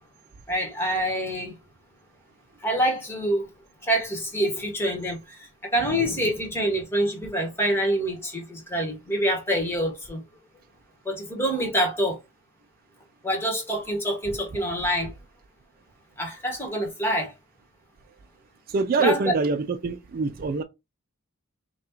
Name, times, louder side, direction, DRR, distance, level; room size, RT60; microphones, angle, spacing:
voice 1, 0.5-1.5 2.6-3.5 3.8-10.2 11.0-12.2 13.2-15.1 16.2-17.3 19.0-19.3, equal, 10° left, 1.3 m, -26 dB
voice 2, 18.7-20.6, right 4 dB, 40° right, 0.3 m, -25 dB
5.9 x 2.3 x 3.0 m
head